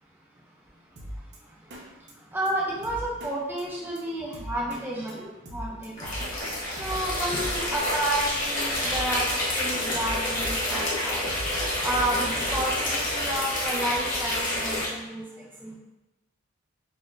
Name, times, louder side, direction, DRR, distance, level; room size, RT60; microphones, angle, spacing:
Drum kit, 1.0-1.4 1.7-1.8 2.1-2.2 2.5-2.6 2.8-3.3 3.6-3.7 4.0-4.1 4.3-4.8 5.1-5.2 5.5-6.3 6.6-7.8 8.1-8.2 8.5-8.6 8.8-9.3 9.6-10.8 11.1-12.8, equal, 50° right, 0.6 m, -39 dB
voice 1, 2.3-6.1 6.7-11.4 11.8-15.8, right 1 dB, 10° right, -4 dB, 0.5 m, -31 dB
sound 1, 6.0-14.8, left 1 dB, 40° left, 1.1 m, -28 dB
4.2 x 2.9 x 2.5 m, 0.96 s
head